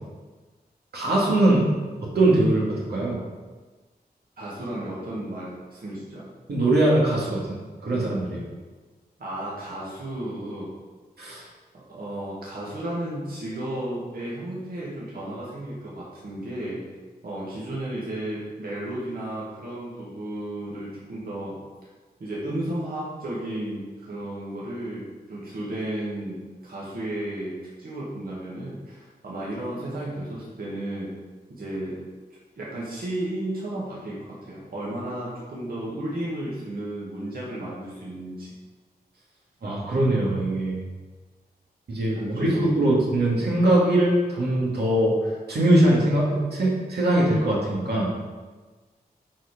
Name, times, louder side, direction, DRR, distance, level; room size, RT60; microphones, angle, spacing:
voice 1, 0.9-1.6 2.0-3.2 6.5-8.4 11.2-11.4 39.6-40.8 41.9-45.1 45.5-48.1, right 1 dB, 85° right, -5 dB, 2.5 m, -21 dB
voice 2, 4.4-6.3 9.2-10.7 11.7-16.8 17.2-21.6 22.2-31.1 31.5-32.0 32.3-38.5 42.1-42.7, right 1 dB, 65° right, -6 dB, 2.3 m, -33 dB
11.0 x 4.9 x 5.2 m, 1.3 s
wide cardioid pair, 135°, 16 cm